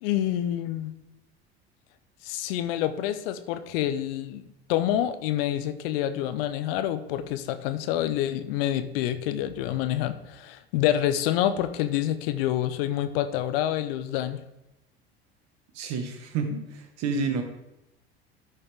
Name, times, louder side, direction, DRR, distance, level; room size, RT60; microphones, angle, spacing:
voice 1, 0.0-0.9 2.2-14.4, left 12 dB, 70° left, 11 dB, 0.8 m, -27 dB
voice 2, 15.7-17.4, right 4 dB, 55° right, 5 dB, 1.7 m, -29 dB
12.5 x 5.5 x 3.6 m, 0.92 s
hypercardioid pair, 75°, 30 cm